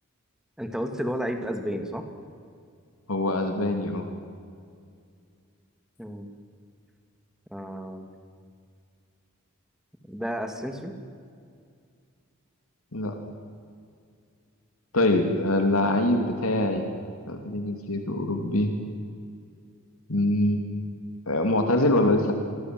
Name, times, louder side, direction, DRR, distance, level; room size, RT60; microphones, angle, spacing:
voice 1, 0.6-2.0 6.0-6.3 7.5-8.1 10.1-10.9, equal, 5° right, 6 dB, 2.6 m, -32 dB
voice 2, 3.1-4.0 12.9-13.1 14.9-16.8 17.3-18.7 20.1-20.6 21.3-22.3, left 1 dB, 80° left, 4 dB, 3.0 m, -24 dB
28.0 x 23.5 x 7.9 m, 2.2 s
head